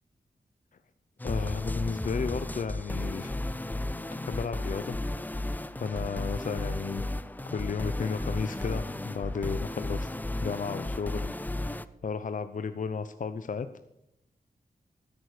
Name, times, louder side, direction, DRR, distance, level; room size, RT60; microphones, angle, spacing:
voice 1, 1.2-3.4 4.3-5.0 5.8-7.0 7.5-11.3 12.0-13.7, left 5 dB, 55° left, 11 dB, 0.6 m, -33 dB
sound 1, 1.2-11.9, left 1 dB, 10° left, 0.5 m, -34 dB
13.0 x 10.5 x 6.6 m, 0.83 s
wide cardioid pair, 95°, 16 cm